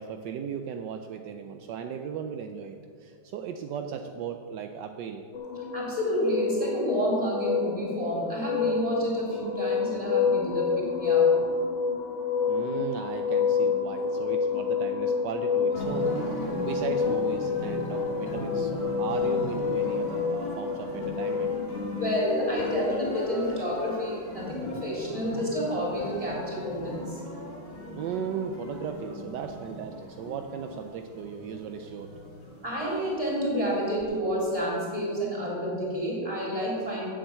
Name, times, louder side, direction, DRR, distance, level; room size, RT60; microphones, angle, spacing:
voice 1, 0.0-5.2 12.5-21.5 27.9-32.1, right 7 dB, 75° right, 5 dB, 1.0 m, -36 dB
sound 1, 5.3-21.8, left 6 dB, 60° left, 1.7 m, -28 dB
voice 2, 5.7-11.3 21.9-27.2 32.6-37.1, equal, 15° right, -5 dB, 3.4 m, -29 dB
sound 2, 15.7-34.0, left 1 dB, 35° left, 2.6 m, -38 dB
8.7 x 7.6 x 8.1 m, 2.2 s
omnidirectional pair, 2.4 m